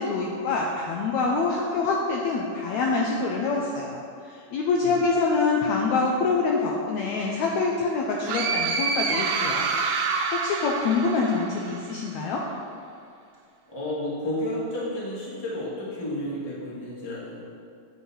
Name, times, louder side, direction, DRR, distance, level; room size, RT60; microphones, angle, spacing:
voice 1, 0.0-4.0 4.2-9.7 10.1-12.4, left 4 dB, 75° left, -1 dB, 1.7 m, -25 dB
sound 1, 8.3-11.9, right 5 dB, 80° right, 2.1 m, -27 dB
voice 2, 13.7-17.4, left 1 dB, 15° left, -8 dB, 0.9 m, -31 dB
8.4 x 4.5 x 5.6 m, 2.3 s
omnidirectional pair, 3.7 m